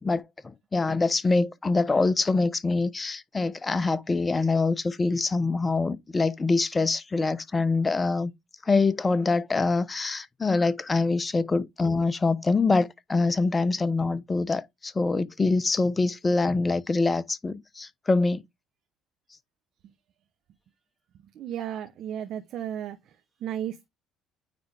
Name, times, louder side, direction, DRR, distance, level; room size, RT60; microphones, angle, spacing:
voice 1, 0.0-8.3 8.7-18.4, left 3 dB, 25° left, 0.9 m, -25 dB
voice 2, 21.4-23.0 23.4-23.9, right 10 dB, 65° right, 1.0 m, -33 dB
9.4 x 3.6 x 3.5 m
supercardioid pair, 70°, 0 cm